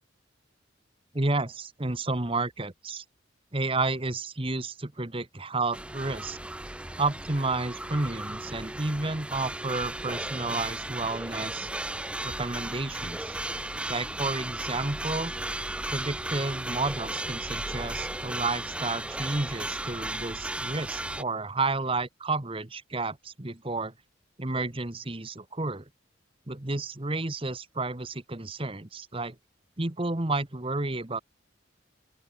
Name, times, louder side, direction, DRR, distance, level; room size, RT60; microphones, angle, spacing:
voice 1, 1.1-3.0 3.5-6.4 7.0-11.7 12.2-13.4 13.9-15.3 15.9-23.9 24.4-25.9 26.5-29.4 29.8-31.2, right 3 dB, 30° right, 1.3 m, -31 dB
sound 1, 5.7-21.2, right 1 dB, 5° right, 0.6 m, -35 dB
open air
head